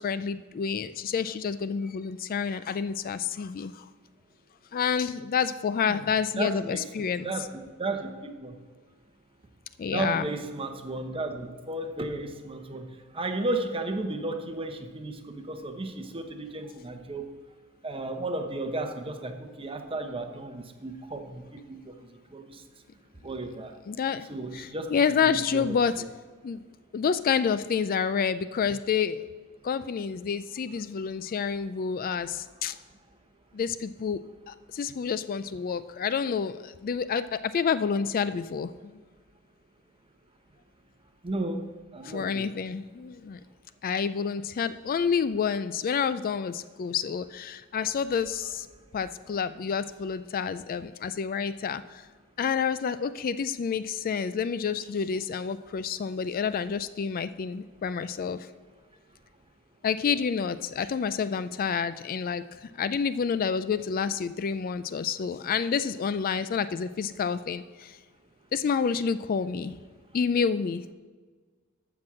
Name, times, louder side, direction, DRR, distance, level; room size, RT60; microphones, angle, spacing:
voice 1, 0.0-3.9 4.7-7.3 9.8-10.3 23.9-24.3 24.5-26.0 26.4-26.6 26.9-29.3 29.6-32.8 33.5-39.0 42.0-43.4 43.8-48.7 48.9-52.0 52.4-58.5 59.8-68.0 68.5-69.8 70.1-70.9, left 6 dB, 45° left, 14 dB, 0.3 m, -29 dB
voice 2, 6.4-6.8 7.2-7.5 7.8-8.5 9.9-12.9 13.1-17.3 17.8-21.9 22.3-22.5 23.2-23.7 24.3-25.0 25.2-25.8 41.2-41.6 41.9-42.5, right 2 dB, 25° right, 6 dB, 1.0 m, -34 dB
14.0 x 6.1 x 6.2 m, 1.4 s
head